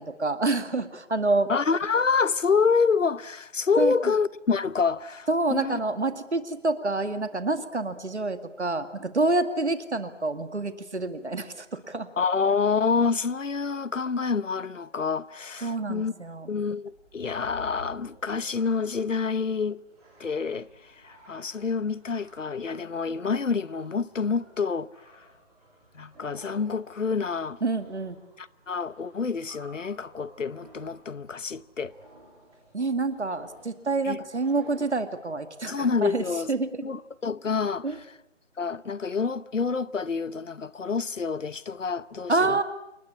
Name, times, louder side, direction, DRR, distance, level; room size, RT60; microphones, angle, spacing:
voice 1, 0.0-1.5 3.8-4.0 5.3-12.1 15.6-16.5 27.6-28.2 32.7-36.9 37.8-38.0 42.3-42.6, right 3 dB, 65° right, 2.3 m, -27 dB
voice 2, 1.5-5.8 12.2-16.1 16.5-19.8 20.2-24.9 25.9-27.6 28.4-31.9 34.0-34.2 34.8-34.9 35.7-36.5 36.8-37.9 38.6-42.6, left 5 dB, 80° left, 1.0 m, -27 dB
sound 1, 16.9-35.6, right 1 dB, ahead, 7.5 m, -54 dB
28.5 x 20.5 x 8.7 m
figure-of-eight pair, 180°, 37 cm